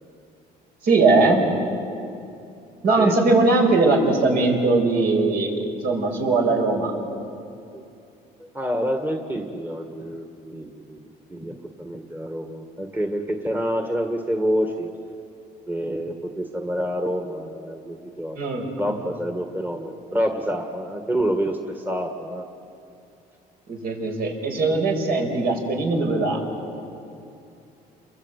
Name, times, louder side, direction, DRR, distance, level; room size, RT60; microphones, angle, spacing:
voice 1, 0.8-1.4 2.8-6.9 18.4-19.0 23.7-26.4, right 3 dB, 65° right, 2 dB, 5.6 m, -20 dB
voice 2, 8.4-11.0 11.3-14.9 15.7-18.4 18.8-22.5, equal, 10° right, 4 dB, 1.8 m, -27 dB
29.0 x 22.5 x 8.3 m, 2.7 s
cardioid pair, 110°, 17 cm